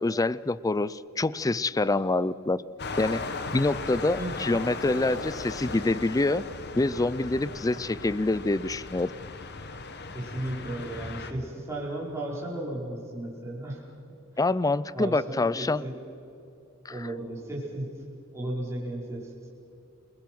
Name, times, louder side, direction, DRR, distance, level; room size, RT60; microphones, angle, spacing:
voice 1, 0.0-2.6 3.0-3.3 3.5-6.4 6.8-9.1 14.4-15.8 16.9-17.1, left 2 dB, 15° left, 19 dB, 0.4 m, -26 dB
sound 1, 2.8-11.3, left 3 dB, 55° left, 1.6 m, -37 dB
voice 2, 10.1-13.8 14.3-14.4 14.9-16.0 16.9-17.9 18.3-19.3, right 1 dB, 15° right, -5 dB, 4.6 m, -34 dB
29.0 x 20.5 x 6.1 m, 2.9 s
head